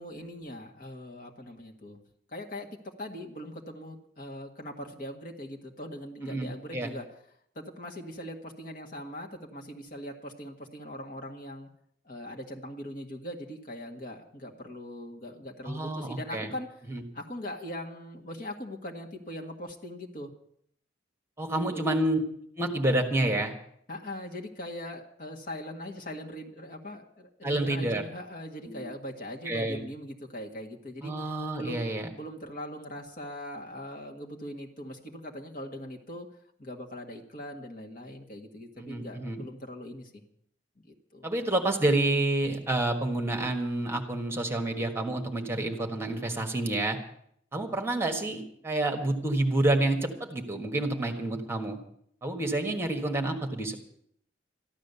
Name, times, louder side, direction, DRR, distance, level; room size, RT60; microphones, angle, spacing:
voice 1, 0.0-2.0 2.3-7.1 7.5-11.7 12.0-16.7 17.1-20.3 21.5-21.9 23.9-31.1 31.5-36.3 36.6-40.2 40.8-41.4, left 1 dB, 50° left, 1 dB, 1.8 m, -41 dB
voice 2, 6.2-6.9 15.6-16.5 16.9-17.0 21.4-22.2 22.6-23.5 27.4-28.0 28.7-28.9 29.4-29.8 31.0-32.1 38.8-39.4 41.2-47.0 47.5-51.8 52.2-53.8, right 2 dB, 15° right, 4 dB, 1.5 m, -29 dB
14.0 x 11.5 x 6.9 m, 0.68 s
head